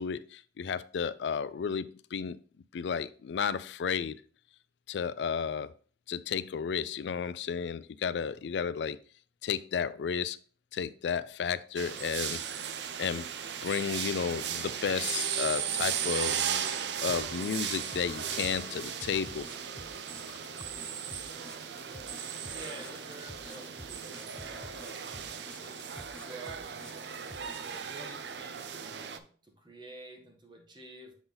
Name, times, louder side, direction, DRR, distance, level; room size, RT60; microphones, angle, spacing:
voice 1, 0.0-2.4 2.7-4.2 4.9-5.7 6.1-9.0 9.4-10.4 10.7-12.4 13.0-13.3 13.6-16.4 17.0-19.5 20.3-20.4, left 6 dB, 80° left, 0.4 m, -33 dB
sound 1, 11.8-29.2, right 8 dB, 80° right, 0.5 m, -36 dB
sound 2, 17.3-27.8, left 1 dB, 5° left, 0.5 m, -51 dB
voice 2, 22.5-27.2 27.6-31.1, right 1 dB, 25° right, 1.5 m, -50 dB
7.1 x 3.9 x 3.9 m
head